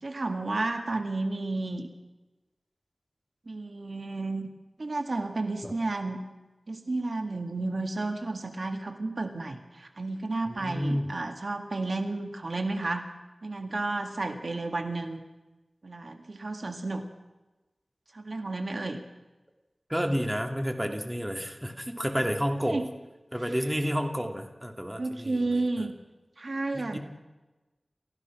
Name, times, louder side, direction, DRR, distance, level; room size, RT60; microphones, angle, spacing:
voice 1, 0.0-1.9 3.5-4.5 4.8-6.2 6.7-13.1 13.4-15.2 15.8-17.0 18.1-19.0 22.6-22.8 25.0-25.9 26.4-27.0, right 2 dB, 65° right, 5 dB, 1.9 m, -32 dB
voice 2, 10.5-11.1 19.9-22.8 23.3-25.9 26.7-27.0, equal, 10° right, 4 dB, 2.4 m, -30 dB
29.5 x 15.0 x 6.1 m, 1.1 s
wide cardioid pair, 60°, 0 cm